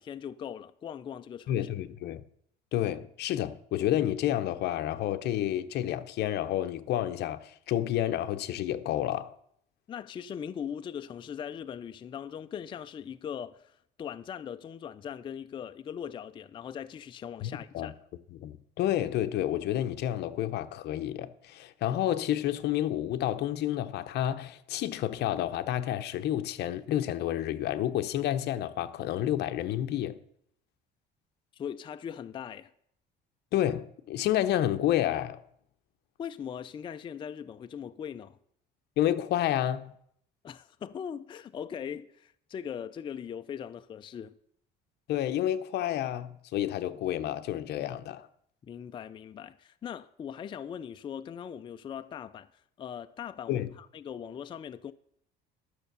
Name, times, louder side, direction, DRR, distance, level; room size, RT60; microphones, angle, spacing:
voice 1, 0.0-1.7 9.9-17.9 31.5-32.7 36.2-38.4 40.4-44.3 48.6-52.5 52.8-54.9, left 8 dB, 25° left, 0.4 m, -40 dB
voice 2, 1.5-2.2 2.7-9.3 17.4-17.9 18.3-30.2 33.5-35.4 39.0-39.9 45.1-48.3 53.5-53.7, left 12 dB, 60° left, 0.8 m, -30 dB
12.0 x 6.6 x 6.8 m
cardioid pair, 140°, 19 cm